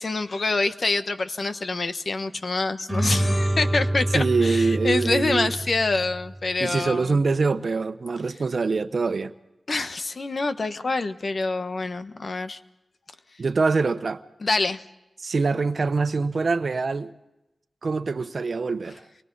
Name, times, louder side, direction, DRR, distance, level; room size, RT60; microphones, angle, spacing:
voice 1, 0.0-7.2 9.7-12.6 14.4-14.8, left 3 dB, 60° left, 1.2 m, -26 dB
sound 1, 2.9-6.5, right 1 dB, 10° left, 7.2 m, -26 dB
voice 2, 4.1-5.5 6.6-9.3 13.4-14.2 15.2-17.1 17.8-19.0, right 4 dB, 65° right, 1.0 m, -24 dB
30.0 x 23.5 x 4.0 m
cardioid pair, 50°, 0 cm